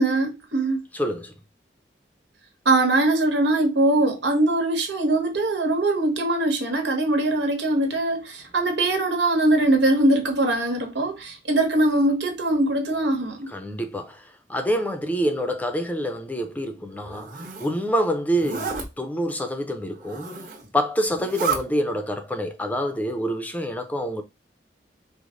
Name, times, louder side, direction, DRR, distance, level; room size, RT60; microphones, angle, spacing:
voice 1, 0.0-0.8 2.6-13.5, right 2 dB, 85° right, 1.5 m, -22 dB
voice 2, 0.9-1.3 13.5-20.3 20.7-24.2, equal, 10° left, 0.5 m, -27 dB
Zipper (clothing), 16.9-17.7 18.3-18.9 20.0-20.7 21.1-21.6, right 5 dB, 45° right, 1.3 m, -31 dB
5.0 x 2.1 x 3.8 m
head